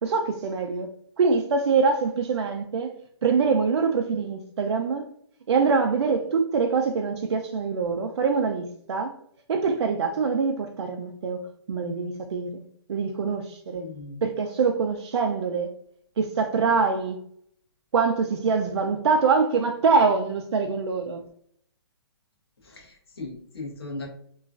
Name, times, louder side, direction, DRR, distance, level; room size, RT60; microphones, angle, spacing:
voice 1, 0.0-0.9 1.2-2.9 3.2-5.1 5.5-9.2 9.5-12.6 12.9-13.9 14.2-15.7 16.2-17.2 17.9-21.2, right 5 dB, 90° right, 0.4 m, -24 dB
voice 2, 13.7-14.2 22.6-24.1, left 2 dB, 65° left, 1.1 m, -38 dB
3.0 x 2.4 x 2.4 m
hypercardioid pair, 175°, 14 cm